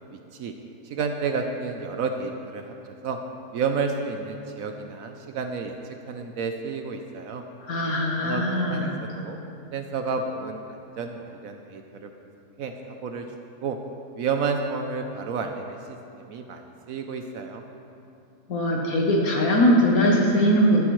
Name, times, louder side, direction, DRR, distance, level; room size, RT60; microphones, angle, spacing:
voice 1, 0.1-0.5 0.8-2.7 3.0-3.2 3.5-7.4 8.2-9.4 9.7-12.1 12.6-13.3 13.6-13.8 14.2-17.6, right 5 dB, 70° right, 5 dB, 0.9 m, -31 dB
voice 2, 7.7-9.0 18.5-20.8, equal, 65° left, -2 dB, 1.4 m, -21 dB
12.0 x 11.0 x 3.1 m, 2.7 s
omnidirectional pair, 1.7 m